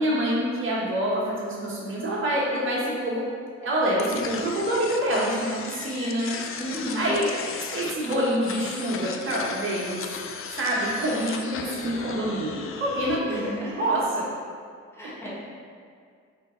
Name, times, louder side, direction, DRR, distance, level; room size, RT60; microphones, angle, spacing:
voice 1, 0.0-3.3 3.6-6.4 6.9-10.1 10.5-13.5 13.8-14.3, right 1 dB, 40° right, -6 dB, 1.4 m, -26 dB
sound 1, 4.0-13.2, left 5 dB, 45° left, 0.4 m, -36 dB
voice 2, 6.6-7.1 13.2-13.8 14.9-15.3, equal, 10° left, -7 dB, 1.3 m, -33 dB
4.5 x 3.0 x 3.9 m, 2.2 s
cardioid pair, 90°, 30 cm